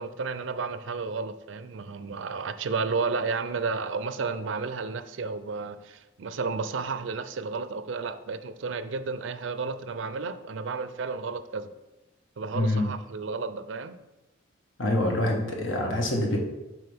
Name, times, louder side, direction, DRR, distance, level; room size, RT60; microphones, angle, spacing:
voice 1, 0.0-11.7 12.4-14.0, right 4 dB, 80° right, 12 dB, 0.5 m, -32 dB
voice 2, 12.5-12.8 14.8-16.4, left 1 dB, 85° left, 0 dB, 1.4 m, -25 dB
7.7 x 4.9 x 3.5 m, 1.0 s
head